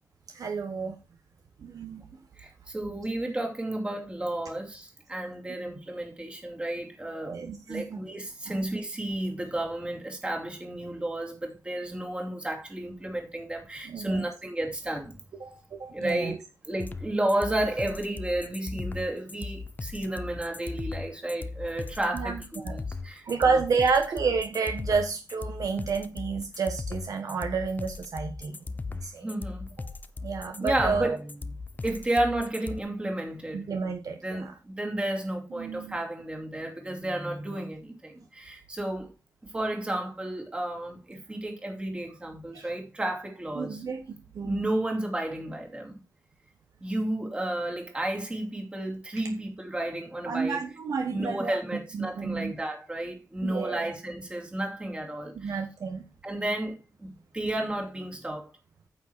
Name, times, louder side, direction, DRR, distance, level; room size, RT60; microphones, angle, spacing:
voice 1, 0.3-1.0 1.6-2.0 7.1-8.0 8.5-8.6 13.8-14.3 15.4-16.3 22.1-22.8 23.2-28.6 28.9-29.3 30.2-31.2 33.5-34.5 35.6-36.0 42.5-42.7 43.5-44.0 44.3-44.6 50.3-51.6 51.9-52.5 53.4-53.9 55.3-56.0, right 5 dB, 55° right, 1.2 m, -30 dB
voice 2, 2.4-7.4 7.7-15.2 15.9-16.4 16.7-23.9 29.2-29.7 30.6-31.3 31.8-33.7 34.2-39.1 39.5-43.8 44.4-46.0 46.8-50.6 51.1-55.6 56.2-58.5, right 1 dB, 15° right, 2.6 m, -32 dB
sound 1, 16.8-32.8, left 3 dB, 25° left, 0.7 m, -37 dB
9.2 x 7.3 x 4.6 m
wide cardioid pair, 150°, 7 cm